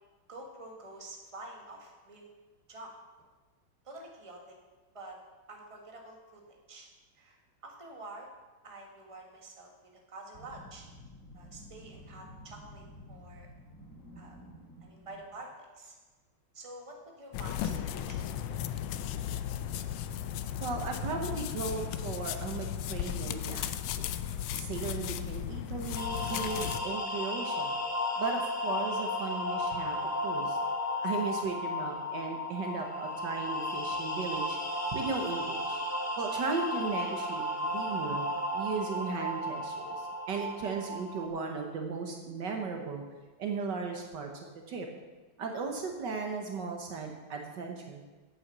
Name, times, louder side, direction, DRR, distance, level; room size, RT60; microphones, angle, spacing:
voice 1, 0.3-2.2 2.7-2.9 3.8-4.5 4.9-5.2 5.5-6.9 7.1-7.4 7.6-8.3 8.6-9.7 10.1-10.8 11.3-13.5 14.2-14.4 14.8-15.9 16.5-18.6, right 2 dB, 15° right, 0 dB, 1.5 m, -48 dB
sound 1, 10.3-15.4, equal, 40° left, 2.5 m, -51 dB
sound 2, 17.3-26.8, left 10 dB, 85° left, 1.4 m, -35 dB
voice 2, 20.6-24.1 24.5-27.7 28.2-30.0 30.2-30.6 31.0-34.6 34.9-35.8 36.2-38.3 38.5-43.0 43.4-44.3 44.7-44.9 45.4-48.0, right 4 dB, 65° right, 3 dB, 1.6 m, -36 dB
sound 3, 26.0-41.3, left 1 dB, 10° left, 0.9 m, -34 dB
8.8 x 8.8 x 6.7 m, 1.2 s
omnidirectional pair, 2.2 m